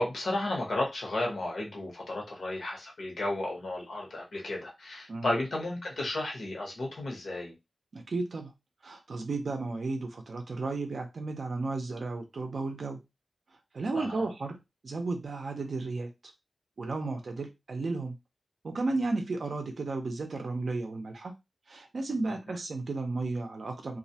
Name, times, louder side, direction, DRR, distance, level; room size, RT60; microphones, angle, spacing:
voice 1, 0.0-7.5 13.9-14.3, left 1 dB, 70° left, 0.9 m, -33 dB
voice 2, 7.9-8.5 8.8-13.0 13.7-14.6 14.8-16.1 16.8-18.2 18.6-21.3 21.7-24.0, right 3 dB, 60° right, 0.4 m, -33 dB
2.3 x 2.1 x 2.7 m
wide cardioid pair, 130°, 0 cm